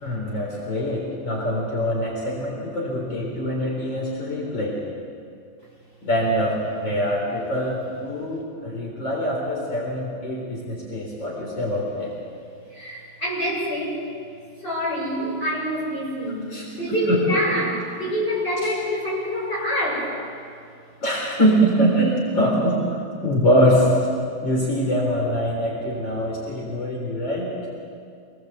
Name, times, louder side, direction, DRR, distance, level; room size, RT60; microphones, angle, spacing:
voice 1, 0.0-4.8 6.0-12.1 16.5-16.7 17.1-17.4 18.6-18.7 21.0-22.8 23.2-23.9 24.4-27.5, equal, 75° left, -3 dB, 4.7 m, -23 dB
voice 2, 12.7-14.0 14.6-20.1, equal, 30° left, -5 dB, 8.3 m, -26 dB
27.5 x 19.5 x 8.1 m, 2.3 s
omnidirectional pair, 2.1 m